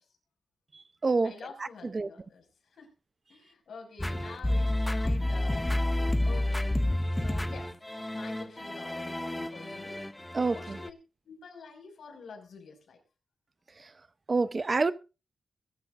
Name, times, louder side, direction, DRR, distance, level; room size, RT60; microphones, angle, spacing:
voice 1, 1.2-2.5 2.8-2.9 3.3-5.9 6.2-6.6 7.2-7.7 8.1-10.0 10.4-10.9 11.2-13.0, left 5 dB, 85° left, 5.9 m, -48 dB
sound 1, 4.0-10.9, left 1 dB, 10° left, 0.7 m, -30 dB
voice 2, 10.3-10.8 14.3-14.9, right 3 dB, 35° right, 0.7 m, -26 dB
22.5 x 11.5 x 2.6 m
wide cardioid pair, 145°, 0 cm